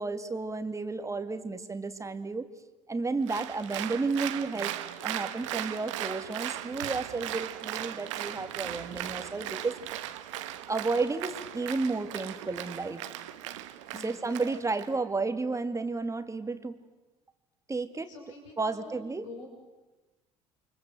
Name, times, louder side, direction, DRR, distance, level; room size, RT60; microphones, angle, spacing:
voice 1, 0.0-2.5 2.9-4.7 5.0-9.8 10.7-13.0 13.9-16.8 17.7-18.1 18.6-19.3, right 3 dB, 20° right, 9 dB, 2.2 m, -32 dB
Applause, 3.3-14.9, right 13 dB, 80° right, 1.3 m, -38 dB
voice 2, 13.9-14.2 18.1-19.5, left 3 dB, 85° left, 1 dB, 6.3 m, -47 dB
29.0 x 24.5 x 7.8 m, 1.1 s
hypercardioid pair, 70°, 16 cm